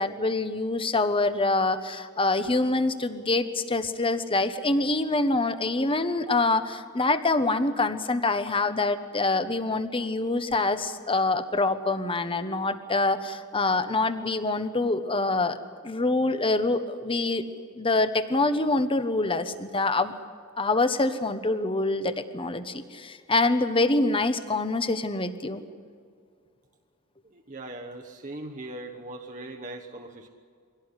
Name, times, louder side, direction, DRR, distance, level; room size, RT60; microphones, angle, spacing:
voice 1, 0.0-15.6 15.8-17.4 17.7-20.1 20.6-25.6, left 2 dB, 25° left, 11 dB, 1.1 m, -25 dB
voice 2, 27.2-30.3, right 1 dB, 35° right, 2 dB, 1.2 m, -40 dB
23.0 x 17.0 x 9.9 m, 2.2 s
head